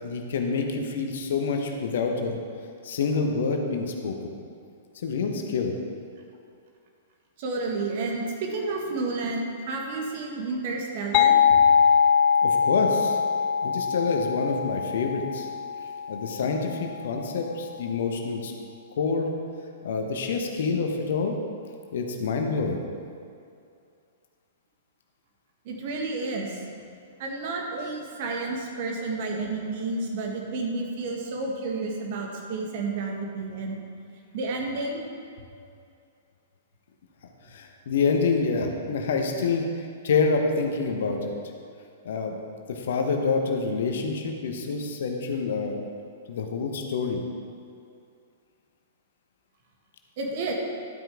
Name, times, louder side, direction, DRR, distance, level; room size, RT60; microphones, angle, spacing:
voice 1, 0.0-2.4 2.8-4.3 4.9-5.7 12.4-13.2 13.6-15.5 16.1-18.5 19.0-19.3 19.8-21.4 21.9-22.8 37.5-41.3 42.0-42.4 42.7-45.8 46.3-47.2, left 4 dB, 60° left, 3 dB, 1.2 m, -27 dB
voice 2, 7.4-11.4 25.7-26.6 27.2-33.8 34.3-35.0 50.2-50.5, right 3 dB, 50° right, 0 dB, 1.8 m, -31 dB
sound 1, 11.1-16.6, left 7 dB, 40° left, 0.3 m, -22 dB
12.5 x 8.9 x 3.6 m, 2.5 s
figure-of-eight pair, 105°, 0 cm